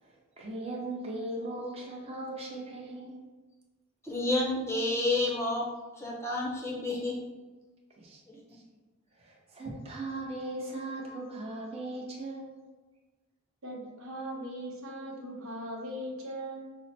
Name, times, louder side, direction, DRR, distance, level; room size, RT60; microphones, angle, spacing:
voice 1, 0.0-3.2 8.0-8.2 8.5-8.6 9.2-12.5, right 2 dB, 30° right, -2 dB, 0.8 m, -38 dB
voice 2, 4.0-5.7 6.0-7.2, left 2 dB, 15° left, -3 dB, 0.6 m, -29 dB
voice 3, 13.6-16.8, equal, 80° right, -1 dB, 1.0 m, -39 dB
5.5 x 2.1 x 4.2 m, 1.2 s
head